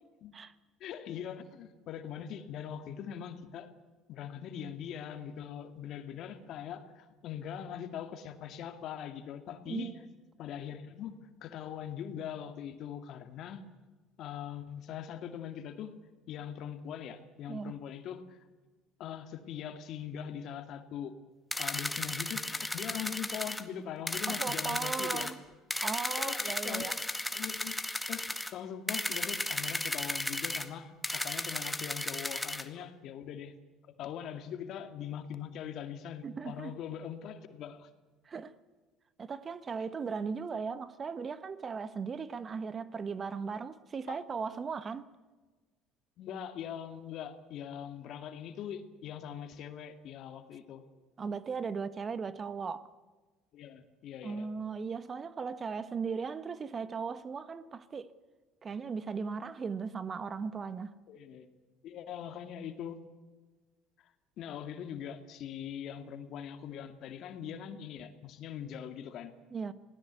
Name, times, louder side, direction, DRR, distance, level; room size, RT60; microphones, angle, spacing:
voice 1, 0.8-3.7 4.1-9.9 10.4-13.6 14.2-16.0 16.3-18.4 19.0-21.2 21.6-25.3 26.2-27.0 27.3-27.8 28.1-33.6 33.9-37.9 44.1-44.2 46.2-50.8 53.5-54.5 61.1-61.5 61.8-63.0 64.0-69.3, left 9 dB, 60° left, 2.2 m, -42 dB
sound 1, 21.5-23.6 24.1-25.3 25.7-28.5 28.9-30.7 31.0-32.6, left 1 dB, 5° left, 1.9 m, -35 dB
voice 2, 24.3-25.4 25.8-26.9 36.2-36.7 38.2-38.5 39.2-45.1 51.2-52.9 54.2-58.1 58.6-60.9 69.5-69.7, right 5 dB, 35° right, 1.3 m, -37 dB
26.5 x 18.0 x 8.3 m
supercardioid pair, 75°, 0 cm